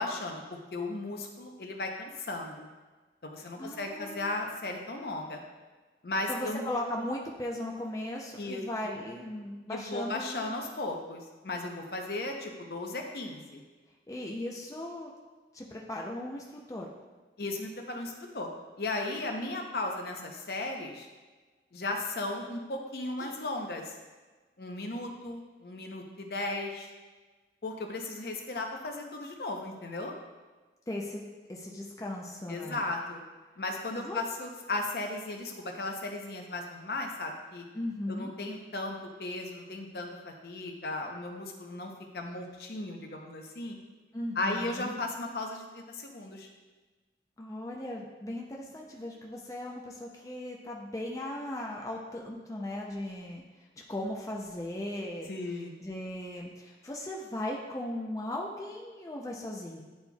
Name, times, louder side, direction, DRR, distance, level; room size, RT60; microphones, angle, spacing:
voice 1, 0.0-2.7 3.2-5.4 6.0-6.7 8.4-9.0 9.7-13.6 17.4-18.5 18.8-21.1 21.7-24.0 24.6-26.9 27.6-30.1 32.5-33.3 33.6-37.6 38.1-43.8 44.4-46.5 55.3-55.8, left 2 dB, 60° left, 2 dB, 0.7 m, -36 dB
voice 2, 3.4-4.4 6.3-10.6 14.1-15.1 15.5-16.9 23.2-23.3 30.9-31.2 31.5-32.9 34.0-34.2 37.7-38.3 44.1-45.0 47.4-53.4 53.9-55.3 55.8-59.8, left 1 dB, 20° left, -2 dB, 0.5 m, -37 dB
9.4 x 4.3 x 2.3 m, 1.3 s
head